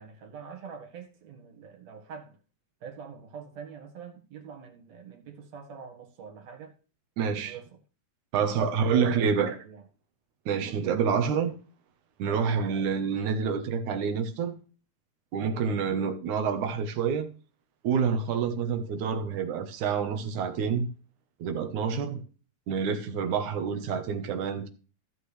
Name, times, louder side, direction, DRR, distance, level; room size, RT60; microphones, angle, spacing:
voice 1, 0.0-2.4 2.8-6.8 7.4-7.7 8.6-9.8 12.2-12.5, right 6 dB, 65° right, 2.7 m, -45 dB
voice 2, 7.2-7.5 8.3-9.6 10.5-11.5 12.2-14.5 15.3-17.3 17.8-20.9 21.4-22.2 22.7-24.7, right 6 dB, 85° right, 2.7 m, -27 dB
15.0 x 7.4 x 3.3 m
omnidirectional pair, 3.3 m